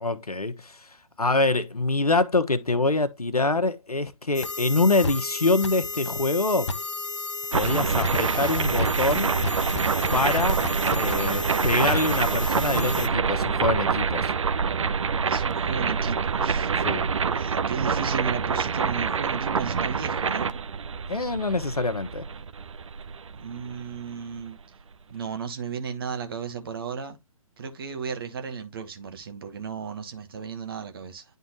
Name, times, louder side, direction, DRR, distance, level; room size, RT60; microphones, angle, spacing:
voice 1, 0.0-0.9 1.2-6.7 7.5-9.3 10.1-10.6 10.9-14.3 16.8-17.1 21.1-22.3, left 3 dB, 80° left, 1.0 m, -25 dB
sound 1, 4.3-13.1, left 3 dB, 50° left, 1.0 m, -32 dB
sound 2, 7.5-24.4, right 5 dB, 55° right, 0.5 m, -26 dB
voice 2, 15.3-16.7 17.2-20.6 23.3-24.6 25.1-27.2 27.6-31.2, right 6 dB, 40° right, 1.2 m, -34 dB
10.5 x 3.8 x 2.8 m
figure-of-eight pair, 140°, 19 cm